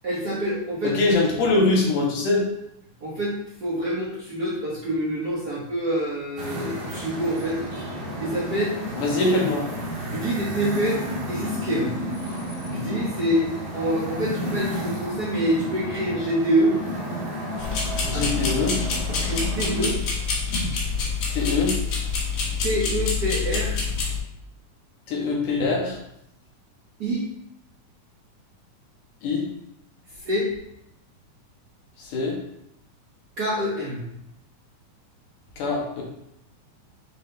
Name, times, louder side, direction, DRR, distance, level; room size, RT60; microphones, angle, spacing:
voice 1, 0.0-1.2 3.0-7.6 8.2-8.8 10.0-11.0 11.3-11.9 12.6-13.5 13.7-16.8 18.1-18.4 19.1-20.3 22.6-23.8 27.0-27.3 30.2-30.5 33.4-34.0, right 1 dB, 80° right, -6 dB, 0.8 m, -26 dB
voice 2, 0.8-2.5 9.0-9.6 18.1-18.8 21.3-21.8 25.1-26.0 29.2-29.4 32.1-32.4 35.6-36.0, left 3 dB, 75° left, -2 dB, 2.9 m, -23 dB
sound 1, 6.4-19.9, equal, 60° right, 3.0 m, -32 dB
sound 2, 17.6-24.2, left 5 dB, 60° left, 2.3 m, -26 dB
7.6 x 4.1 x 3.3 m, 0.79 s
omnidirectional pair, 3.7 m